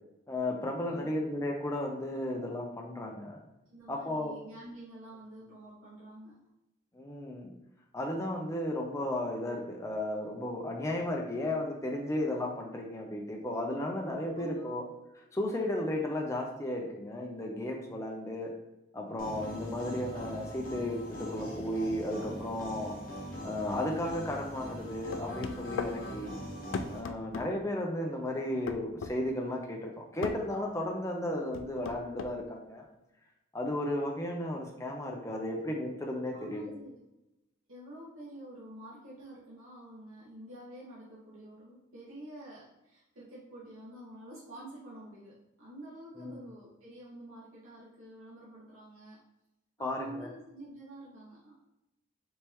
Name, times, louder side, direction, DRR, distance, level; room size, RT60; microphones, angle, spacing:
voice 1, 0.3-3.4 3.9-4.4 6.9-7.5 7.9-14.8 15.3-18.5 18.9-22.9 23.4-26.3 26.9-32.9 33.5-36.7 46.2-46.5 49.8-50.3, left 1 dB, 15° left, 0 dB, 0.5 m, -34 dB
voice 2, 0.9-1.2 3.7-6.4 14.3-14.8 36.3-37.0 37.7-49.2 49.8-51.5, right 1 dB, 75° right, -9 dB, 1.4 m, -48 dB
sound 1, 19.2-27.0, equal, 40° left, 1.1 m, -41 dB
sound 2, 25.1-26.0 26.7-27.5 28.7-29.2 30.2-30.4 31.5-32.3, left 5 dB, 65° left, 0.3 m, -36 dB
4.3 x 3.5 x 3.0 m, 0.92 s
head